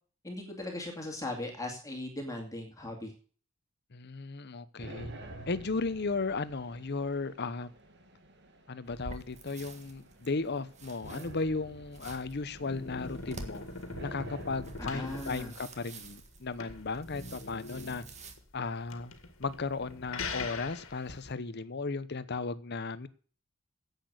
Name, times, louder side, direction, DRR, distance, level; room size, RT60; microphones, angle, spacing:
voice 1, 0.2-3.1 14.8-15.5, left 1 dB, 15° left, 2.4 m, -38 dB
voice 2, 3.9-5.1 5.5-7.7 8.7-13.6 14.0-18.0 18.5-19.1 19.4-23.1, left 3 dB, 55° left, 0.9 m, -35 dB
sound 1, 4.8-16.2, right 1 dB, 55° right, 2.0 m, -50 dB
sound 2, 8.8-18.3, right 2 dB, 35° right, 1.7 m, -49 dB
sound 3, 12.0-21.3, left 3 dB, 75° left, 2.0 m, -43 dB
10.5 x 8.3 x 8.1 m
head